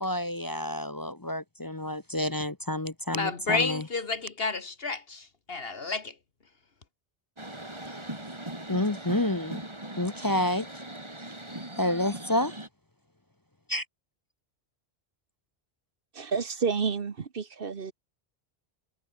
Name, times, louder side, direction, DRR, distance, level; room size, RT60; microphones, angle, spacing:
voice 1, 0.0-3.8 8.7-9.6 10.0-10.7 11.8-12.5 13.7-13.8, left 1 dB, 20° left, 0.8 m, -29 dB
voice 2, 3.1-6.1, left 4 dB, 70° left, 1.9 m, -31 dB
sound 1, 7.4-12.7, right 1 dB, 25° right, 3.4 m, -40 dB
voice 3, 16.1-17.9, right 5 dB, 60° right, 1.3 m, -30 dB
omnidirectional pair, 1.1 m